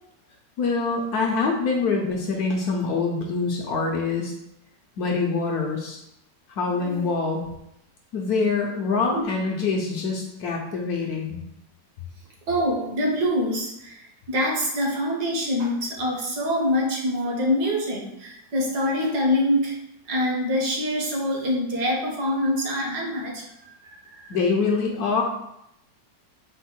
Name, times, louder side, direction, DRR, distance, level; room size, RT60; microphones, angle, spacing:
voice 1, 0.6-4.3 5.0-6.0 6.5-7.4 8.1-11.4 24.3-25.2, left 4 dB, 70° left, 0 dB, 1.0 m, -25 dB
voice 2, 12.5-19.8 20.1-24.4, left 1 dB, 65° right, -1 dB, 1.4 m, -25 dB
4.4 x 2.1 x 4.2 m, 0.80 s
omnidirectional pair, 1.9 m